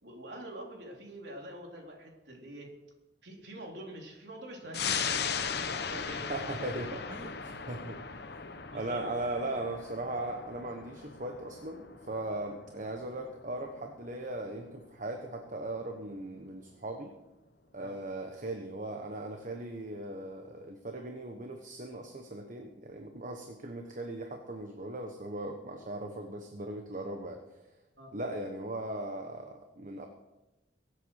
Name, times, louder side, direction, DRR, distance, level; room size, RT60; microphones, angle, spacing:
voice 1, 0.0-2.7 3.2-6.3 8.7-9.0 17.8-17.9 28.0-28.1, right 1 dB, 70° right, 0 dB, 3.9 m, -46 dB
sound 1, 4.7-15.7 16.1-16.2, left 6 dB, 65° left, 1.0 m, -38 dB
voice 2, 6.2-8.0 8.7-17.1 17.7-27.4 28.1-30.1, right 1 dB, 45° right, 4 dB, 1.2 m, -38 dB
23.5 x 8.2 x 6.5 m, 1.1 s
head